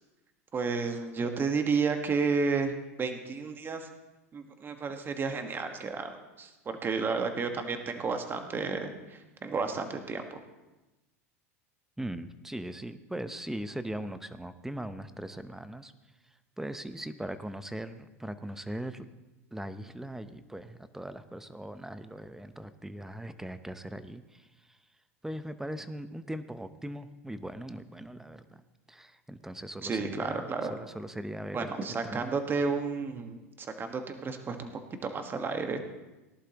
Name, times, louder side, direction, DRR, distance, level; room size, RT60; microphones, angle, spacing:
voice 1, 0.5-3.9 4.3-10.4 29.8-30.7 31.5-34.7 35.0-35.8, right 4 dB, 25° right, 6 dB, 1.5 m, -32 dB
voice 2, 12.0-15.9 16.2-19.1 19.5-24.8 25.2-28.6 28.9-32.4, right 1 dB, 5° right, 12 dB, 0.7 m, -40 dB
18.5 x 11.5 x 3.0 m, 1.1 s
hypercardioid pair, 95°, 8 cm